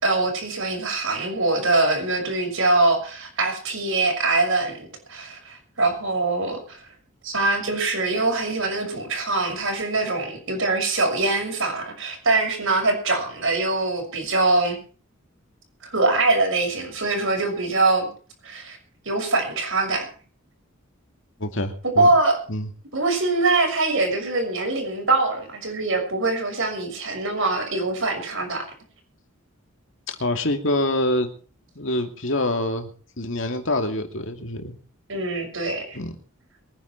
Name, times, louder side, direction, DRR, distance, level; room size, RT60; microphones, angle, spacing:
voice 1, 0.0-6.8 7.2-14.8 15.8-18.1 18.4-18.8 19.0-20.1 22.0-22.4 22.9-28.7 35.1-36.0, right 2 dB, 70° right, 3 dB, 6.3 m, -23 dB
voice 2, 21.4-22.1 22.5-22.7 30.1-31.3 31.8-32.9 33.2-34.8 35.9-36.2, left 1 dB, 65° left, 5 dB, 2.6 m, -25 dB
23.0 x 10.5 x 4.7 m, 0.40 s
head